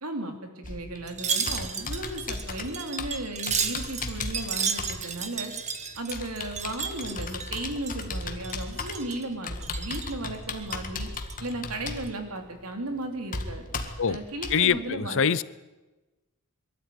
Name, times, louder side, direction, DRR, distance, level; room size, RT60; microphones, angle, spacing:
voice 1, 0.0-5.5 6.0-11.1 11.4-13.6 14.1-15.3, right 1 dB, 75° right, 3.2 m, -35 dB
Computer keyboard, 0.6-14.6, left 3 dB, 40° left, 1.9 m, -37 dB
Wind chime, 1.1-8.2 8.4-9.2 9.6-10.1 10.6-11.5 11.9-12.1, right 6 dB, 30° right, 1.7 m, -33 dB
voice 2, 14.5-15.4, left 7 dB, 60° left, 0.7 m, -24 dB
23.0 x 13.0 x 9.4 m
head